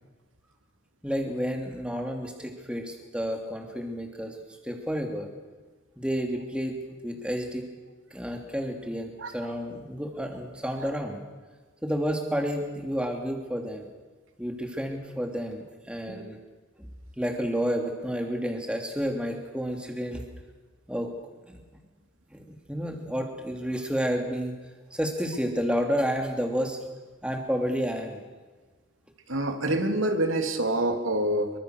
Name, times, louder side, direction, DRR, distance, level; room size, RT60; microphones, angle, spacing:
voice 1, 1.0-4.4 4.6-5.3 6.0-6.8 7.0-7.7 8.1-11.2 11.8-13.9 14.4-16.4 16.8-16.9 17.2-20.3 20.9-21.1 21.5-21.6 22.3-24.5 24.9-26.9 27.2-28.2, equal, 5° right, 3 dB, 3.1 m, -30 dB
voice 2, 29.3-31.5, right 1 dB, 85° right, 5 dB, 3.1 m, -26 dB
26.0 x 24.0 x 6.7 m, 1.3 s
head